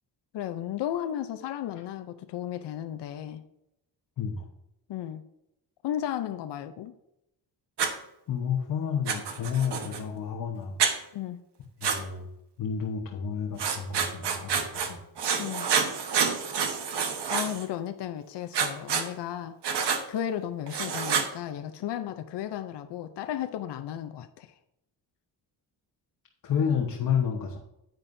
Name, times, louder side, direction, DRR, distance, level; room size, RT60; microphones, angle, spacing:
voice 1, 0.3-3.4 4.9-5.2 5.8-6.9 11.1-11.4 15.4-15.7 17.3-19.6 20.1-24.5, left 10 dB, 85° left, 9 dB, 0.7 m, -34 dB
voice 2, 4.2-4.5 8.3-10.8 11.8-12.3 12.6-15.0 26.4-27.6, left 7 dB, 55° left, 0 dB, 1.2 m, -30 dB
Writing, 7.8-7.9 9.1-10.0 10.8-10.9 11.8-12.0 13.6-14.9 15.2-17.7 18.5-19.1 19.6-20.0 20.7-21.3, right 6 dB, 75° right, 1.4 m, -28 dB
9.9 x 9.2 x 2.7 m, 0.84 s
wide cardioid pair, 170°, 41 cm